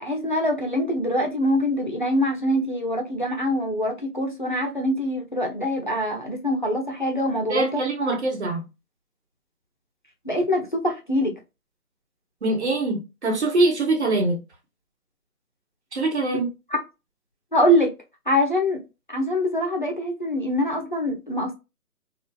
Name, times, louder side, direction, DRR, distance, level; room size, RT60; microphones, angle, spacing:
voice 1, 0.0-7.8 10.2-11.3 17.5-17.9 18.3-18.8 19.1-21.6, equal, 35° left, 0.5 m, -24 dB
voice 2, 7.5-8.6 12.4-14.4 15.9-16.5, right 2 dB, 45° right, 1.0 m, -23 dB
2.6 x 2.3 x 2.2 m
figure-of-eight pair, 160°, 45 cm